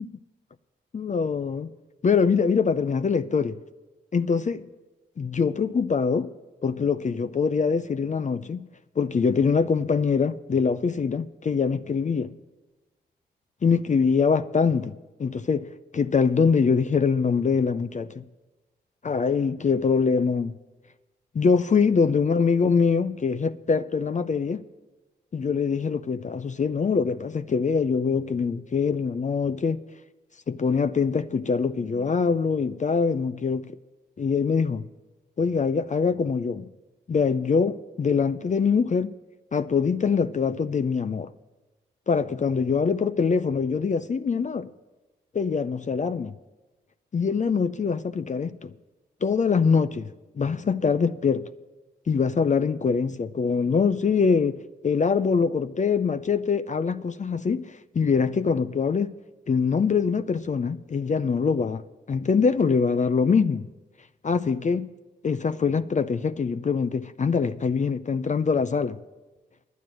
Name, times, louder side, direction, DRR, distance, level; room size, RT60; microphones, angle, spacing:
voice 1, 0.9-1.7 2.0-3.6 4.1-4.6 5.2-6.3 6.6-8.7 9.0-12.4 13.6-14.9 15.2-18.2 19.0-20.6 21.3-24.6 25.3-29.8 30.5-33.7 34.2-34.8 35.4-36.7 37.1-39.1 39.5-41.3 42.1-44.7 45.3-46.3 47.1-48.7 49.2-50.1 50.4-51.5 52.1-59.1 59.5-63.7 64.2-64.9 65.2-69.0, left 5 dB, 40° left, 0.5 m, -24 dB
10.5 x 9.5 x 7.5 m
supercardioid pair, 40°, 20 cm